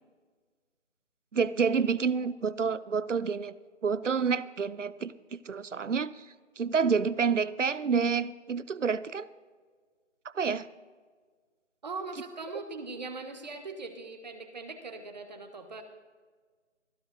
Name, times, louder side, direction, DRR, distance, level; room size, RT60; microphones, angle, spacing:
voice 1, 1.3-3.5 3.8-6.3 6.6-9.3 10.2-10.7, right 6 dB, 75° right, 18 dB, 0.6 m, -28 dB
voice 2, 11.8-15.8, right 3 dB, 35° right, 7 dB, 1.3 m, -40 dB
25.5 x 10.0 x 2.7 m, 1.5 s
figure-of-eight pair, 160°, 37 cm